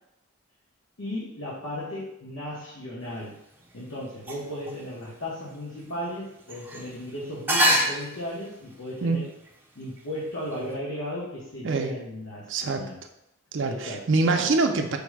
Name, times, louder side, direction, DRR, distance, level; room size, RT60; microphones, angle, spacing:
voice 1, 1.0-3.4 3.7-9.3 9.8-13.0 13.6-14.0, left 1 dB, 75° left, -7 dB, 1.0 m, -35 dB
sound 1, 3.0-10.8, equal, 10° right, 0.5 m, -30 dB
voice 2, 12.5-12.8 13.5-15.0, right 3 dB, 60° right, 5 dB, 0.5 m, -24 dB
5.2 x 2.1 x 4.7 m, 0.83 s
head